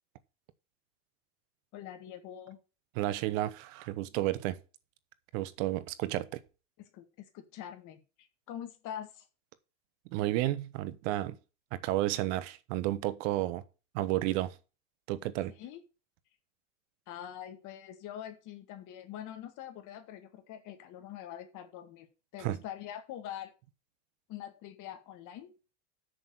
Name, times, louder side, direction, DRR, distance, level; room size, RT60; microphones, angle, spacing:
voice 1, 1.7-2.6 6.8-9.3 15.6-15.8 17.1-22.1 22.3-23.5 24.3-25.5, left 10 dB, 50° left, 2.1 m, -44 dB
voice 2, 3.0-4.6 5.3-6.4 10.1-11.4 11.7-13.6 13.9-14.5 15.1-15.5 22.4-22.6, right 15 dB, 70° right, 1.2 m, -32 dB
6.8 x 6.8 x 7.5 m
supercardioid pair, 130°, 39 cm